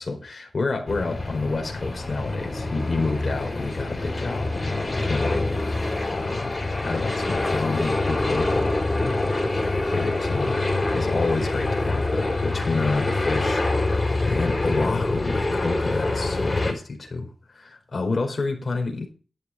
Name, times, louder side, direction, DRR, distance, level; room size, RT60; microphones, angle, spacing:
voice 1, 0.0-9.2 9.9-19.1, left 3 dB, 50° left, 4.5 m, -29 dB
sound 1, 0.9-16.7, left 2 dB, 30° left, 5.1 m, -25 dB
11.0 x 10.5 x 5.0 m
cardioid pair, 50°, 0 cm